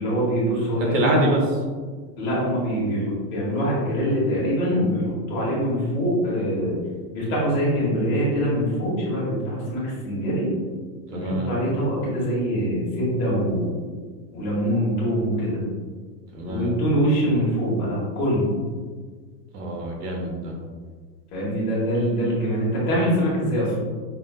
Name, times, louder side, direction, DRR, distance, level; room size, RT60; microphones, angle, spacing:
voice 1, 0.0-1.2 2.2-6.8 7.1-10.5 11.1-13.8 14.3-15.6 16.5-18.5 21.3-23.8, equal, 30° left, -7 dB, 1.1 m, -24 dB
voice 2, 0.8-1.4 11.1-11.5 16.3-16.7 19.5-20.5, right 1 dB, 70° right, -1 dB, 1.1 m, -25 dB
5.9 x 2.4 x 2.3 m, 1.5 s
supercardioid pair, 180°, 49 cm